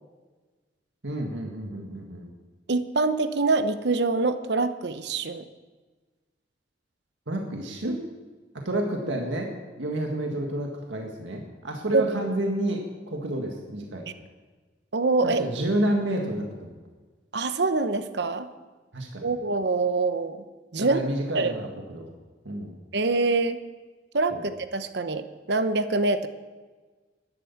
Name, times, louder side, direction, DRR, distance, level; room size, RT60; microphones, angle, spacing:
voice 1, 1.0-2.3 7.3-8.0 8.5-9.5 9.8-14.1 15.2-16.7 18.9-19.3 20.8-22.1 22.5-22.7 24.3-24.5, right 1 dB, 85° right, 1 dB, 1.8 m, -30 dB
voice 2, 2.7-5.5 7.8-8.0 11.9-12.1 14.9-15.4 17.3-18.5 19.2-20.4 20.7-21.0 21.3-21.5 22.9-23.6 24.1-26.3, right 3 dB, 65° right, 10 dB, 0.9 m, -25 dB
12.5 x 11.0 x 7.2 m, 1.3 s
head